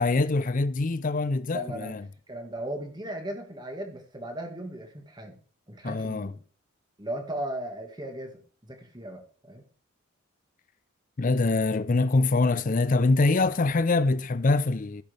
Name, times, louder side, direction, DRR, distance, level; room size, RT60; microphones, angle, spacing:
voice 1, 0.0-2.0 5.8-6.3 11.2-15.0, left 3 dB, 40° left, 0.5 m, -24 dB
voice 2, 1.5-2.0 2.3-5.4 5.7-6.3 7.0-9.6, right 1 dB, 20° right, 1.7 m, -37 dB
15.5 x 6.5 x 3.4 m
head